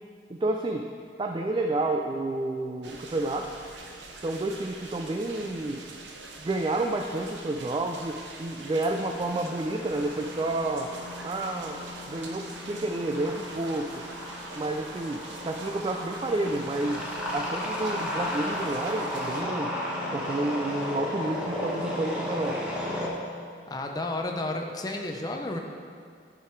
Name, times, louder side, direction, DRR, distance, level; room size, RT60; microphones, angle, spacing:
voice 1, 0.4-0.8 1.2-3.5 4.2-5.8 6.3-10.9 11.2-11.8 12.1-14.0 14.5-17.0 17.3-19.8 20.1-22.6, right 2 dB, 25° right, 3 dB, 0.3 m, -30 dB
sound 1, 2.8-19.4, right 3 dB, 80° right, 0.8 m, -44 dB
sound 2, 8.9-23.1, left 1 dB, 5° right, 1.1 m, -35 dB
voice 2, 23.7-25.6, left 2 dB, 20° left, 2 dB, 0.6 m, -32 dB
10.0 x 4.8 x 4.5 m, 2.2 s
head